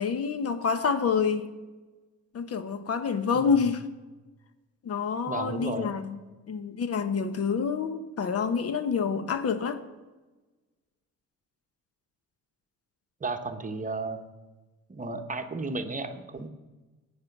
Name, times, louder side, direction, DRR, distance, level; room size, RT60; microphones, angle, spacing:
voice 1, 0.0-1.5 2.3-3.8 4.8-6.2 6.5-9.8, left 6 dB, 50° left, 0.9 m, -27 dB
voice 2, 5.3-5.9 13.2-14.2 14.9-16.5, right 3 dB, 25° right, 1.0 m, -33 dB
12.0 x 8.8 x 5.9 m
cardioid pair, 90°, 30 cm